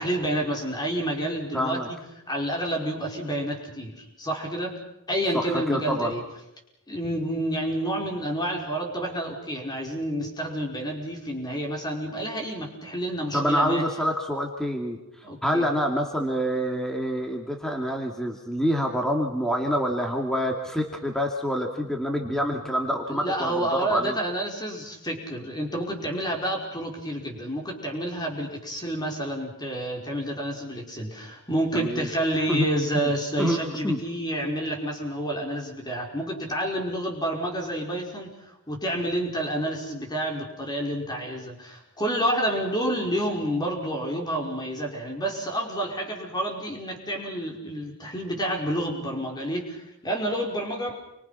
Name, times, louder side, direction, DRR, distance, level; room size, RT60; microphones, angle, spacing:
voice 1, 0.0-2.0 2.3-4.8 5.1-6.2 6.9-13.8 15.2-15.7 23.1-38.3 38.7-51.0, right 1 dB, 20° left, 1 dB, 5.4 m, -29 dB
voice 2, 1.5-1.9 5.3-6.1 13.3-15.0 15.4-24.2 31.7-32.1 32.5-32.7 32.9-33.1 33.4-34.0, equal, ahead, 1 dB, 2.6 m, -26 dB
29.5 x 24.5 x 6.0 m, 0.87 s
head